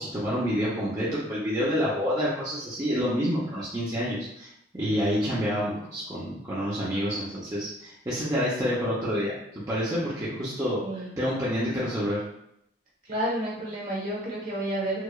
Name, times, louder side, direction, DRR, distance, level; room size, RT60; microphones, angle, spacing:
voice 1, 0.0-4.5 4.8-10.8 11.2-12.2, equal, 20° right, -9 dB, 0.7 m, -28 dB
voice 2, 13.0-15.0, right 1 dB, 50° right, -4 dB, 1.4 m, -30 dB
4.7 x 2.4 x 2.3 m, 0.77 s
head